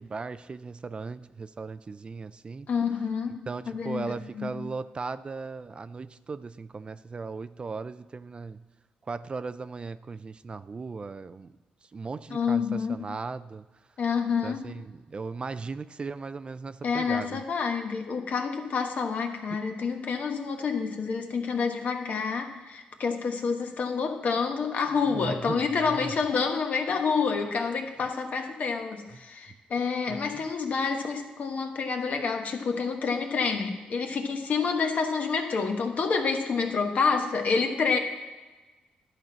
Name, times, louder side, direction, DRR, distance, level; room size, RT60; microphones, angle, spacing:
voice 1, 0.0-2.7 3.5-8.6 9.1-13.6 14.4-17.4 25.1-26.1 30.1-30.5, right 4 dB, 35° right, 13 dB, 0.3 m, -37 dB
voice 2, 2.7-4.6 12.3-13.1 14.0-14.7 16.8-38.0, left 5 dB, 55° left, 4 dB, 1.2 m, -28 dB
11.0 x 4.3 x 6.1 m, 1.2 s
cardioid pair, 70°, 3 cm